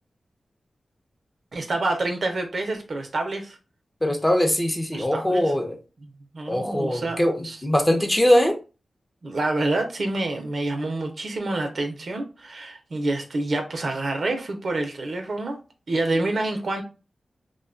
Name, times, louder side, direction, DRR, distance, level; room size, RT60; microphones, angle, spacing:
voice 1, 1.5-3.6 4.9-5.5 6.0-7.6 9.2-15.6 15.9-16.8, right 2 dB, 65° right, 0.5 m, -27 dB
voice 2, 4.0-5.8 6.5-8.6, left 1 dB, 20° left, 0.6 m, -21 dB
2.5 x 2.2 x 2.4 m
cardioid pair, 45°, 0 cm